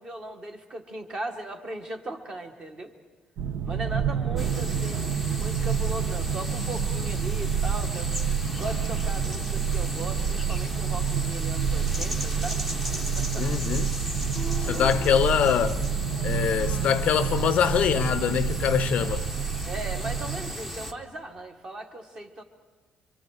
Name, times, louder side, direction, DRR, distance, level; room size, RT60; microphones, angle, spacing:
voice 1, 0.0-2.9 3.6-8.2 8.5-12.6 13.1-13.5 14.6-14.9 18.8-22.4, right 2 dB, 25° right, 1.6 m, -38 dB
sound 1, 3.4-20.5, right 7 dB, 60° right, 0.9 m, -28 dB
sound 2, 4.4-20.9, equal, 5° right, 0.9 m, -36 dB
voice 2, 13.4-13.9 14.6-15.8 16.2-19.3, left 8 dB, 45° left, 0.6 m, -24 dB
26.0 x 25.0 x 4.9 m
cardioid pair, 175°, 3 cm